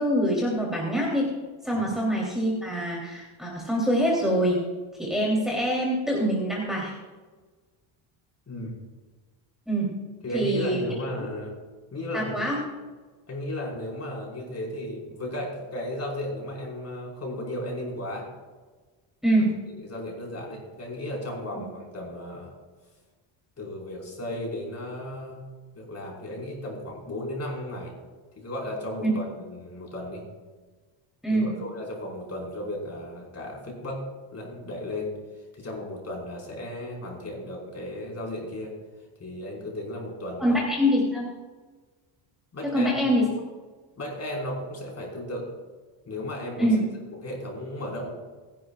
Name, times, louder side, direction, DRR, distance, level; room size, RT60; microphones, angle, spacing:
voice 1, 0.0-1.3 1.6-4.6 4.9-7.0 9.7-10.0 10.3-10.8 12.1-12.6 19.2-19.6 29.0-29.1 31.2-31.6 40.4-41.3 42.6-43.3 46.6-46.8, equal, ahead, -5 dB, 3.4 m, -24 dB
voice 2, 10.2-11.5 11.9-12.5 13.3-18.3 19.7-22.5 23.6-25.4 25.7-28.0 28.4-30.2 31.3-34.1 34.3-35.1 35.6-38.7 39.2-40.6 42.5-43.0 44.0-45.5 46.1-46.7 47.1-48.1, left 1 dB, 30° left, -2 dB, 5.2 m, -35 dB
27.0 x 11.0 x 2.5 m, 1.3 s
cardioid pair, 130°, 49 cm